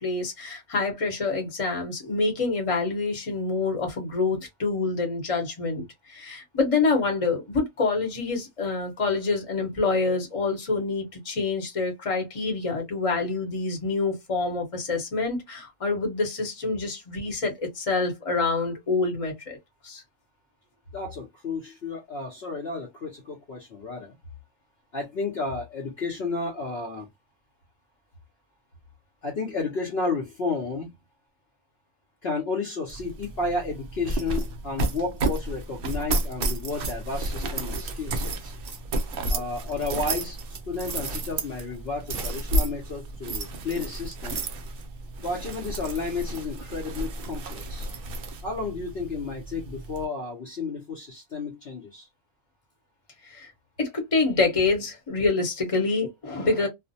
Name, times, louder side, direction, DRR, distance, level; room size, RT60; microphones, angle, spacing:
voice 1, 0.0-19.6 19.8-20.0 53.3-53.5 53.8-56.7, left 3 dB, 30° left, 0.9 m, -26 dB
voice 2, 20.9-24.1 24.9-27.1 29.2-30.9 32.2-38.5 39.3-44.4 45.2-47.9 48.4-52.1, left 3 dB, 55° left, 0.9 m, -32 dB
sound 1, 32.9-50.0, right 2 dB, 60° right, 0.6 m, -32 dB
2.4 x 2.1 x 2.6 m
omnidirectional pair, 1.4 m